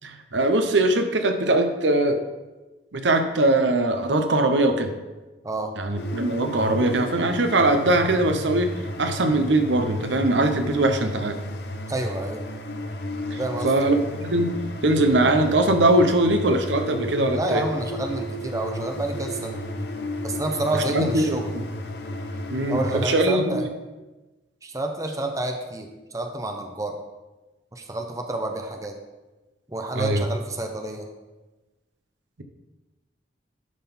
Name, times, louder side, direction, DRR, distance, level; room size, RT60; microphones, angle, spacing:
voice 1, 0.0-2.2 2.9-4.9 5.8-8.7 9.0-11.4 13.3-14.5 14.8-17.6 20.9-21.6 22.5-23.7 29.9-30.2, right 2 dB, 85° right, 7 dB, 0.9 m, -21 dB
sound 1, 6.0-23.1, left 1 dB, 65° left, 0.8 m, -33 dB
voice 2, 11.9-12.4 13.4-13.8 17.3-19.6 20.2-21.5 22.7-23.7 24.6-27.0 27.7-29.0 29.7-31.1, right 1 dB, 20° right, 4 dB, 0.7 m, -29 dB
11.0 x 4.0 x 5.5 m, 1.1 s
head